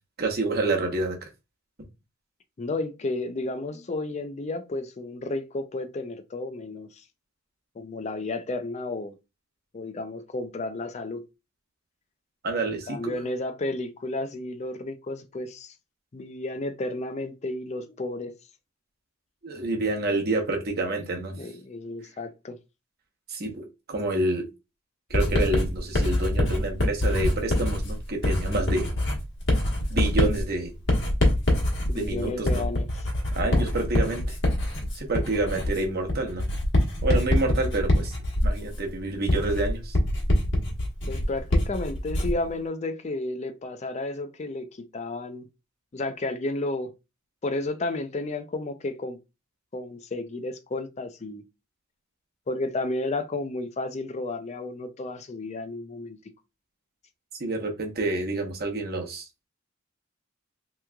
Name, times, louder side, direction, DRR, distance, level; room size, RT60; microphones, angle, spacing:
voice 1, 0.2-1.3 12.4-13.1 19.4-21.3 23.3-24.4 25.1-28.9 29.9-30.7 31.9-32.6 33.3-34.4 34.9-36.5 37.0-38.2 38.4-40.0 57.4-59.3, right 2 dB, 50° right, 0.9 m, -28 dB
voice 2, 2.6-7.0 7.7-9.2 9.7-11.2 12.7-15.8 16.1-18.3 21.4-22.6 31.9-33.1 33.4-33.9 41.1-45.5 45.9-46.9 47.4-49.2 49.7-51.4 52.5-56.2, left 2 dB, 35° left, 0.4 m, -32 dB
Writing, 25.1-42.5, left 1 dB, 60° left, 1.2 m, -25 dB
3.5 x 3.0 x 2.2 m
head